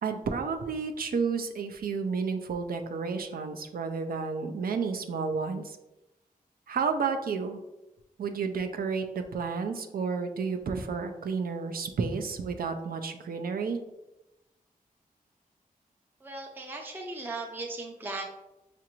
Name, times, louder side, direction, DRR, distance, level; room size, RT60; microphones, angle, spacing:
voice 1, 0.0-5.8 6.7-7.6 8.2-13.8, right 5 dB, 85° right, 6 dB, 0.4 m, -31 dB
voice 2, 16.2-18.2, right 2 dB, 15° right, 1 dB, 0.4 m, -37 dB
5.7 x 2.5 x 2.9 m, 0.96 s
wide cardioid pair, 110°, 15 cm